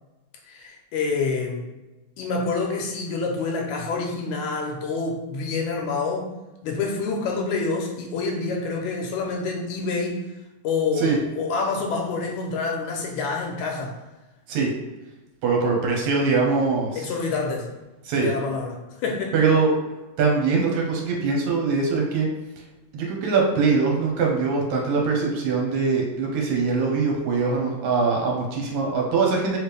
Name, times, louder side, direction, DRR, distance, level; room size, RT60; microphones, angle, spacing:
voice 1, 0.4-1.6 2.2-6.3 6.6-10.2 10.6-14.0 17.0-17.7 18.2-19.4, left 4 dB, 80° left, 1 dB, 1.9 m, -27 dB
voice 2, 15.4-17.1 18.1-18.3 19.3-19.7 20.2-22.3 22.9-29.6, right 4 dB, 75° right, -1 dB, 2.0 m, -22 dB
4.5 x 3.1 x 3.3 m, 1.1 s
omnidirectional pair, 3.6 m